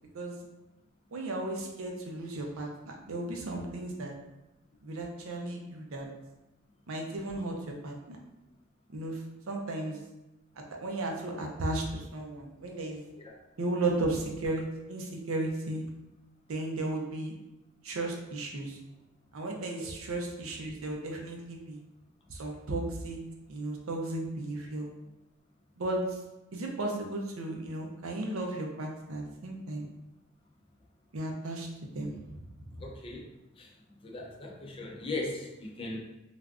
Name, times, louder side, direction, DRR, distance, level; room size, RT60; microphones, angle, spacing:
voice 1, 1.1-4.1 4.8-6.1 6.9-8.2 8.9-9.2 9.5-10.0 10.8-13.0 13.6-15.8 16.5-17.3 17.8-18.8 19.3-21.8 22.3-23.2 23.5-24.9 25.8-26.2 26.5-29.9 31.1-31.7 31.9-32.4, right 2 dB, 80° right, 1 dB, 0.6 m, -35 dB
voice 2, 32.8-33.3 33.6-33.7 34.0-36.0, left 2 dB, 25° left, 0 dB, 0.4 m, -38 dB
3.3 x 2.4 x 2.3 m, 0.97 s
head